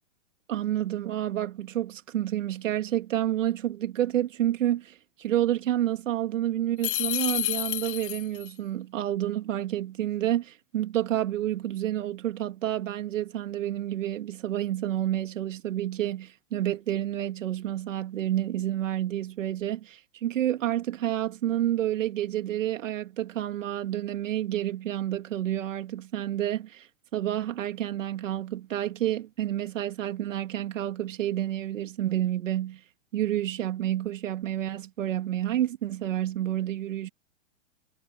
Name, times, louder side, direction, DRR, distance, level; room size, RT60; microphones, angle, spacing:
voice 1, 0.5-26.9 27.1-32.8 33.1-37.1, right 12 dB, 70° right, 3.0 m, -29 dB
sound 1, 6.8-8.5, left 16 dB, 40° left, 1.4 m, -30 dB
supercardioid pair, 170°, 39 cm